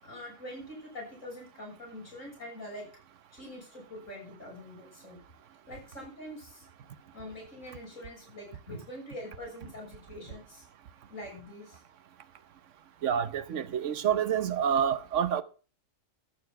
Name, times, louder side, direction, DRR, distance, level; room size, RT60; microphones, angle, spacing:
voice 1, 0.0-2.9 3.3-5.2 5.7-6.7 7.1-10.6 11.1-11.8, left 1 dB, 85° left, 7.0 m, -44 dB
voice 2, 13.0-15.4, right 8 dB, 75° right, 1.1 m, -28 dB
13.5 x 6.9 x 5.7 m
omnidirectional pair, 1.3 m